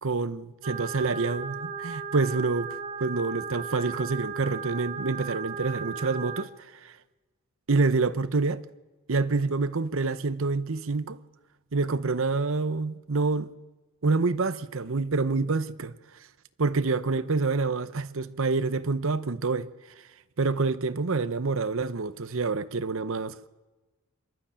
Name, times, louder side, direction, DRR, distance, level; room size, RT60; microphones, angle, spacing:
voice 1, 0.0-2.7 3.0-6.9 7.7-8.6 9.1-11.2 11.7-13.5 14.0-15.9 16.6-19.7 20.4-23.5, right 3 dB, 65° right, 0.8 m, -27 dB
sound 1, 0.6-6.4, right 6 dB, 35° right, 1.1 m, -36 dB
26.0 x 12.5 x 8.8 m
head